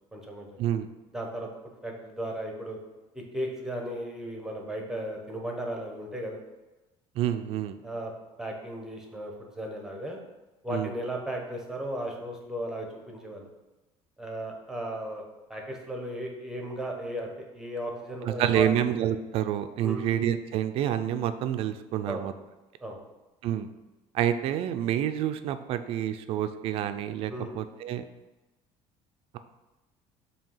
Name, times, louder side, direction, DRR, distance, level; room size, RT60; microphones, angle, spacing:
voice 1, 0.1-0.5 1.1-1.5 1.8-2.8 3.1-6.4 7.8-8.1 8.4-10.2 10.6-13.5 14.2-18.8 19.8-20.1 22.1-22.3 22.8-23.0 27.3-27.5, equal, 5° right, 1 dB, 0.9 m, -35 dB
voice 2, 7.2-7.8 10.7-10.9 18.2-22.3 23.4-23.7 24.1-28.0, right 10 dB, 50° right, 10 dB, 0.4 m, -28 dB
7.4 x 2.9 x 5.6 m, 1.1 s
cardioid pair, 170°, 12 cm